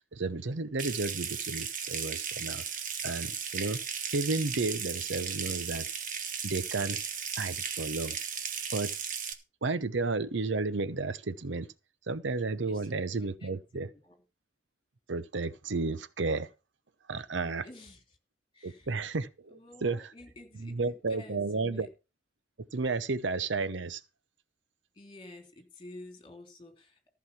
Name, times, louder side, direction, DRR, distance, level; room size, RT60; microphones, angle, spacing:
voice 1, 0.1-2.6 3.0-3.8 4.1-5.9 6.4-7.0 7.4-8.2 8.7-8.9 9.6-11.7 12.1-13.9 15.1-16.5 17.1-17.7 18.6-20.1 20.5-21.9 22.7-24.0, right 3 dB, 75° right, 0.8 m, -32 dB
Water tap faucet / Sink (filling or washing) / Trickle dribble, 0.8-9.3, right 7 dB, 45° right, 1.5 m, -36 dB
voice 2, 12.6-14.2 17.6-18.0 18.5-18.9 19.5-21.9 24.9-27.1, left 1 dB, 25° left, 3.1 m, -51 dB
14.5 x 6.2 x 5.8 m
head